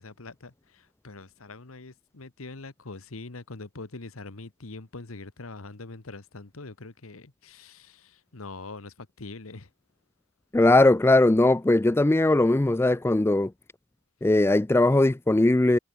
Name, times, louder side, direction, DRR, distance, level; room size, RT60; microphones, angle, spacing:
voice 1, 0.0-9.7, left 3 dB, 90° left, 1.4 m, -43 dB
voice 2, 10.5-13.5 14.2-15.8, left 2 dB, 10° left, 0.3 m, -20 dB
head